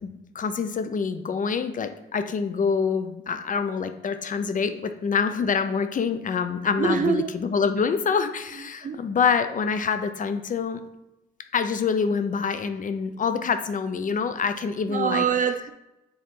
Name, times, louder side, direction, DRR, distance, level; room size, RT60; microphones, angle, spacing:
voice 1, 0.0-10.8 11.5-15.2, left 6 dB, 40° left, 9 dB, 0.6 m, -26 dB
voice 2, 6.8-7.3 8.5-9.1 14.9-15.7, right 6 dB, 40° right, 8 dB, 0.7 m, -25 dB
6.7 x 3.9 x 3.7 m, 0.95 s
cardioid pair, 90°, 20 cm